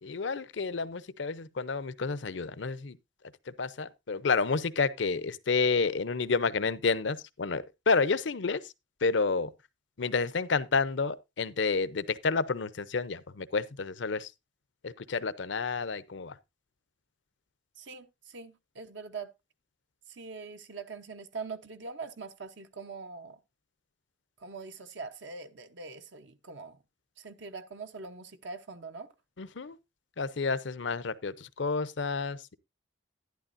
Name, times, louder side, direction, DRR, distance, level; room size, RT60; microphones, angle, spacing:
voice 1, 0.0-3.0 3.6-8.7 9.0-9.5 10.0-14.3 14.8-16.3 29.4-29.8 30.2-32.6, left 4 dB, 65° left, 0.6 m, -30 dB
voice 2, 17.8-19.3 20.1-23.4 24.4-26.8 27.2-29.1, right 4 dB, 65° right, 0.8 m, -43 dB
11.5 x 10.5 x 2.6 m
head